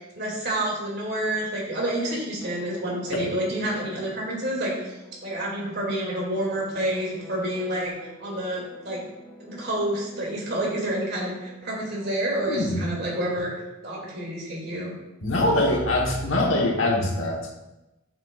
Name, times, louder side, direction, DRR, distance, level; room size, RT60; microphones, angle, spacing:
voice 1, 0.2-4.9 5.2-7.9 8.2-9.0 9.4-13.5 13.8-14.9, right 1 dB, 55° right, -3 dB, 2.5 m, -28 dB
sound 1, 1.3-13.4, right 1 dB, 5° left, 1.7 m, -47 dB
voice 2, 12.5-12.9 15.2-17.5, left 1 dB, 75° left, -1 dB, 1.3 m, -23 dB
8.7 x 7.3 x 2.4 m, 1.0 s
head